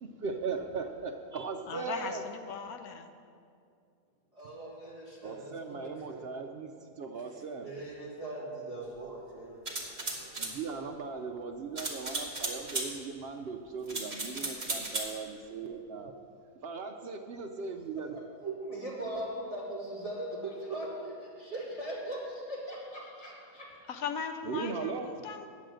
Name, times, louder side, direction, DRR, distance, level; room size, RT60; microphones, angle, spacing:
voice 1, 0.0-2.2 5.2-7.7 10.4-16.1 16.6-18.2 24.4-25.1, right 5 dB, 65° right, 5 dB, 0.6 m, -38 dB
voice 2, 1.7-3.1 23.9-25.5, left 6 dB, 70° left, 7 dB, 1.1 m, -38 dB
voice 3, 4.3-5.8 6.1-6.2 7.6-10.3 18.1-23.7, right 1 dB, 20° left, -7 dB, 2.8 m, -40 dB
sound 1, 9.7-10.5 11.8-12.9 13.9-15.1, right 2 dB, 30° right, 1.5 m, -35 dB
9.0 x 7.4 x 7.6 m, 2.4 s
omnidirectional pair, 1.7 m